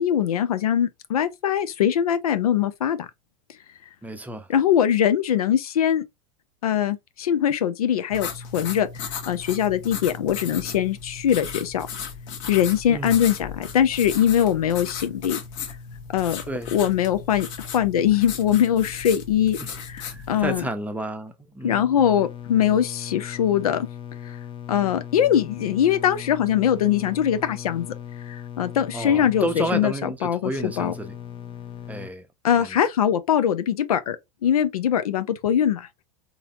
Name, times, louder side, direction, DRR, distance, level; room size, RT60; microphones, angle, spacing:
voice 1, 0.0-3.0 4.5-6.0 6.6-8.9 9.3-11.9 12.5-15.4 16.1-16.4 16.7-17.5 17.7-20.6 21.6-23.9 24.7-27.9 28.3-30.9 32.4-34.2 34.4-35.9, left 9 dB, 85° left, 0.6 m, -22 dB
voice 2, 4.0-4.5 12.9-13.2 16.5-16.7 19.6-19.8 20.1-22.0 28.9-31.2 31.9-32.3 32.6-32.8, right 1 dB, 10° right, 0.6 m, -31 dB
sound 1, 8.1-20.6, left 6 dB, 60° left, 1.3 m, -36 dB
sound 2, 22.0-32.1, left 9 dB, 30° left, 0.6 m, -38 dB
4.0 x 3.0 x 2.4 m
hypercardioid pair, 100°, 18 cm